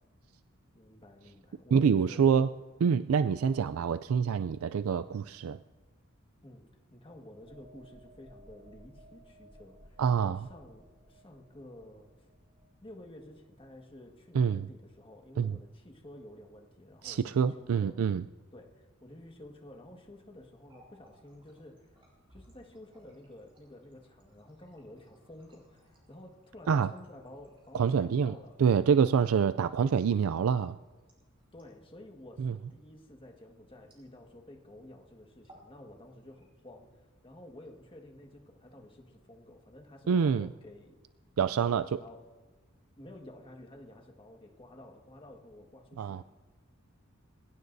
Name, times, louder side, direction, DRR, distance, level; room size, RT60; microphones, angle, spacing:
voice 1, 0.7-2.5 6.4-12.1 12.8-18.0 18.5-22.0 22.3-28.5 31.5-41.0 41.4-42.3 43.0-46.2, left 1 dB, 25° left, 2 dB, 1.7 m, -52 dB
voice 2, 1.7-2.5 2.8-5.6 10.0-10.5 14.3-14.7 15.4-15.6 17.0-18.2 26.7-26.9 27.7-30.8 32.4-32.6 40.1-40.5 41.4-42.0 46.0-46.2, right 6 dB, 80° right, 13 dB, 0.4 m, -26 dB
sound 1, 7.4-14.9 15.2-15.4, right 1 dB, 50° right, 1.3 m, -59 dB
Water tap faucet, 20.7-34.5 34.8-35.0 35.3-35.8 36.1-36.8 37.4-38.2, right 1 dB, 25° right, 6.2 m, -65 dB
26.5 x 16.5 x 2.7 m, 1.3 s
head